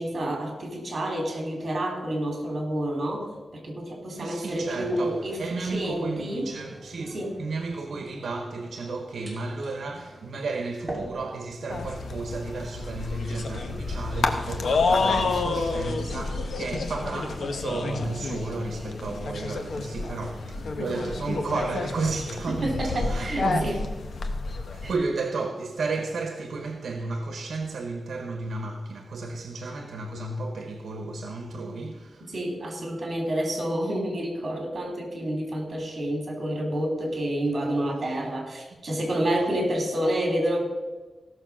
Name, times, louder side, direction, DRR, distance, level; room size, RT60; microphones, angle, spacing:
voice 1, 0.0-6.5 7.1-7.4 20.8-21.0 22.5-23.8 24.8-24.9 31.6-31.7 32.3-40.7, right 1 dB, 40° right, 3.3 m, -29 dB
voice 2, 4.2-23.8 24.7-32.3, right 3 dB, 80° right, 1.0 m, -33 dB
sound 1, 4.4-22.4, right 1 dB, 5° right, 2.6 m, -46 dB
sound 2, 11.7-25.0, left 3 dB, 70° left, 1.0 m, -29 dB
16.0 x 6.5 x 6.1 m
wide cardioid pair, 150°, 0 cm